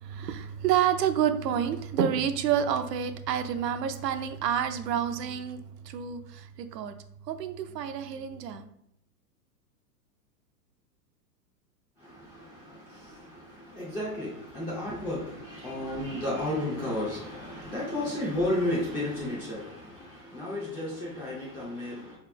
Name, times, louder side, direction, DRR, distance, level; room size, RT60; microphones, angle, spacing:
voice 1, 0.0-6.9 7.3-8.7, right 9 dB, 80° right, 0.6 m, -29 dB
voice 2, 12.0-22.2, left 1 dB, 10° left, 0.3 m, -33 dB
3.6 x 3.2 x 3.7 m
hypercardioid pair, 140°, 48 cm